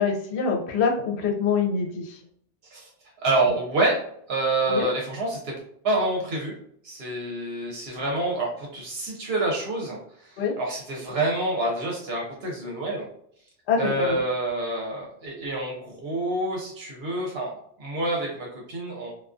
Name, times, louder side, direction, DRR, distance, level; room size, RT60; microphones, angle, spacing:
voice 1, 0.0-2.2 4.7-4.9 10.4-10.5 13.7-14.2, left 5 dB, 80° left, 1 dB, 0.8 m, -25 dB
voice 2, 3.2-4.0 4.3-5.5 5.8-6.5 6.8-13.1 13.8-19.1, right 2 dB, 75° right, -2 dB, 0.9 m, -27 dB
2.3 x 2.2 x 2.4 m, 0.67 s
omnidirectional pair, 1.1 m